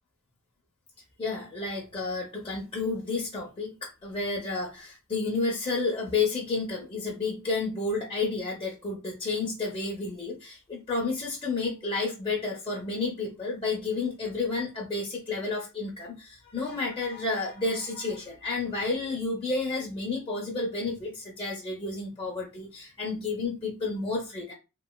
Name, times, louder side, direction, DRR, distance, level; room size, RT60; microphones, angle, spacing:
voice 1, 1.2-24.5, left 3 dB, 25° left, -2 dB, 0.5 m, -31 dB
3.0 x 2.3 x 2.2 m, 0.29 s
head